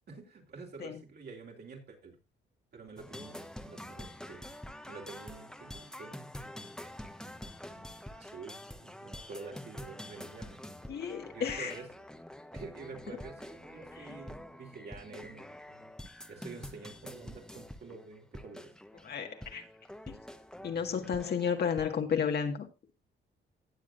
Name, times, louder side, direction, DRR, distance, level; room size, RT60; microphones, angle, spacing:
voice 1, 0.1-2.2 2.7-4.5 4.9-6.2 7.7-10.6 11.3-11.9 12.5-15.8 16.3-18.7, right 4 dB, 55° right, 1 dB, 3.6 m, -48 dB
sound 1, 3.0-22.0, left 1 dB, 5° left, 1.1 m, -47 dB
voice 2, 10.9-11.7 19.0-19.6 20.1-20.2 20.6-22.7, left 7 dB, 55° left, 5 dB, 1.8 m, -32 dB
18.0 x 7.4 x 2.6 m, 0.27 s
cardioid pair, 90°, 20 cm